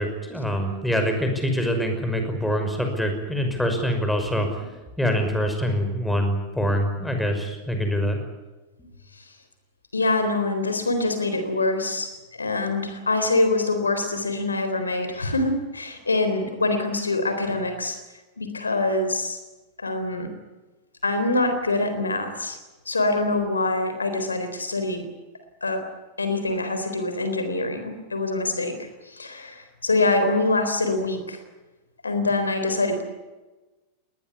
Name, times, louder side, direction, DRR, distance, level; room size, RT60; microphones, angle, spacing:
voice 1, 0.0-4.7 5.0-8.2, equal, 5° left, 5 dB, 5.8 m, -25 dB
voice 2, 9.9-12.1 12.4-18.0 18.4-19.4 19.8-20.3 21.0-22.6 22.9-25.1 25.6-25.8 26.2-31.4 32.0-33.0, left 2 dB, 75° left, 8 dB, 3.8 m, -25 dB
21.5 x 20.0 x 9.8 m, 1.2 s
figure-of-eight pair, 90°, 0 cm